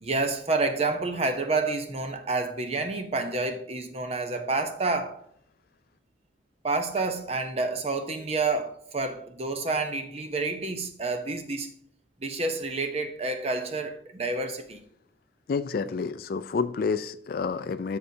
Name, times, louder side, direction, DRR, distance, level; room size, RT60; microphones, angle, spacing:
voice 1, 0.0-5.2 6.6-11.7 12.2-14.8, right 3 dB, 35° right, 0.8 m, -29 dB
voice 2, 15.5-18.0, left 5 dB, 50° left, 0.3 m, -29 dB
11.0 x 6.6 x 2.7 m
head